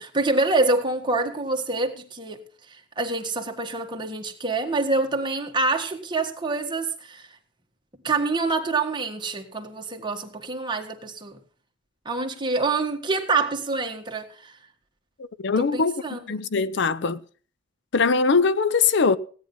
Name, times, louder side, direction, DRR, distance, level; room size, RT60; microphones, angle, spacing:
voice 1, 0.0-2.4 2.7-7.3 8.0-11.4 12.0-14.6 15.6-16.2, right 3 dB, 25° right, 1.7 m, -26 dB
voice 2, 15.2-16.0 16.3-17.2 17.9-19.2, left 4 dB, 60° left, 0.6 m, -21 dB
16.5 x 9.7 x 5.5 m
head